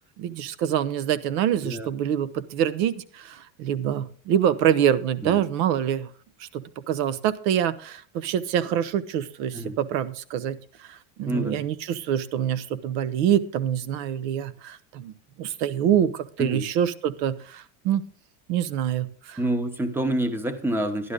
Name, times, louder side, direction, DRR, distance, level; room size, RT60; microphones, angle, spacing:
voice 1, 0.2-6.1 6.4-10.6 10.9-15.1 15.4-18.0 18.5-19.4, right 9 dB, 85° right, 15 dB, 1.0 m, -25 dB
voice 2, 11.3-11.7 16.4-16.7 19.4-21.1, right 1 dB, 5° right, 9 dB, 0.8 m, -27 dB
11.5 x 11.5 x 3.7 m, 0.43 s
cardioid pair, 145°, 49 cm